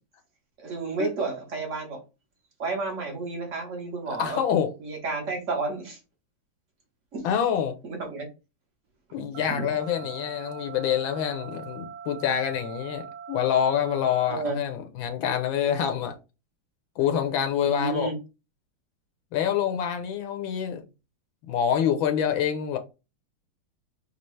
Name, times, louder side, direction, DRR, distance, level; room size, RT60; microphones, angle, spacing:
voice 1, 0.6-2.0 2.6-4.4 4.8-6.0 7.1-7.3 7.8-8.3 9.5-9.7 14.3-14.6 17.6-18.1, right 3 dB, 40° right, 1.4 m, -31 dB
voice 2, 4.1-4.7 7.2-7.8 9.1-16.1 17.0-18.1 19.3-20.8 21.5-22.8, left 9 dB, 75° left, 1.3 m, -26 dB
sound 1, 9.3-14.3, right 7 dB, 85° right, 1.5 m, -42 dB
5.2 x 2.4 x 3.2 m
omnidirectional pair, 2.2 m